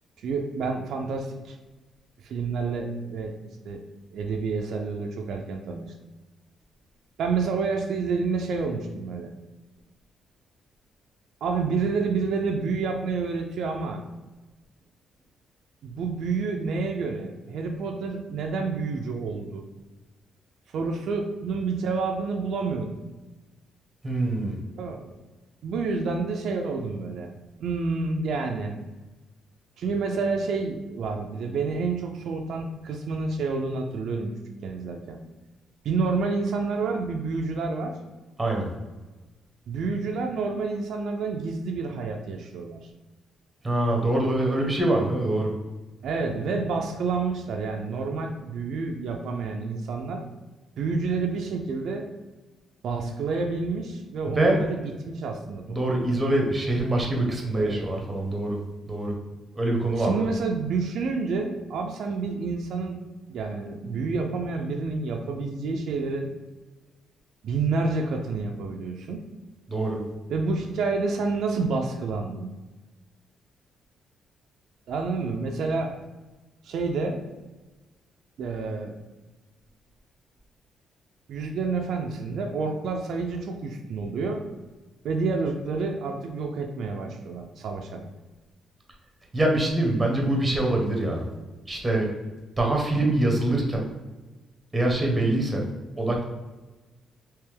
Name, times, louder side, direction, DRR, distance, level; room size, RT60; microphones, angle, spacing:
voice 1, 0.2-1.6 2.2-3.4 3.6-3.8 4.1-5.9 7.2-9.3 11.4-14.0 15.8-19.6 20.7-23.0 24.7-25.2 25.6-27.3 27.6-28.8 29.8-34.4 34.6-35.2 35.8-38.0 39.7-42.8 46.0-50.2 50.8-52.1 52.8-56.1 57.5-57.8 59.9-63.0 63.3-66.3 67.4-69.2 70.3-72.5 74.9-76.0 76.6-77.2 78.4-79.0 81.3-84.5 85.0-88.1, right 4 dB, 65° right, 3 dB, 0.4 m, -29 dB
voice 2, 24.0-24.6 38.4-38.7 43.6-45.5 54.3-54.6 55.7-58.6 58.8-59.1 59.5-60.3 69.7-70.0 89.3-91.2 91.7-92.1 92.6-93.9 94.7-95.6 96.0-96.2, right 1 dB, 15° right, 0 dB, 0.8 m, -24 dB
3.3 x 3.0 x 3.3 m, 1.2 s
cardioid pair, 140°, 0 cm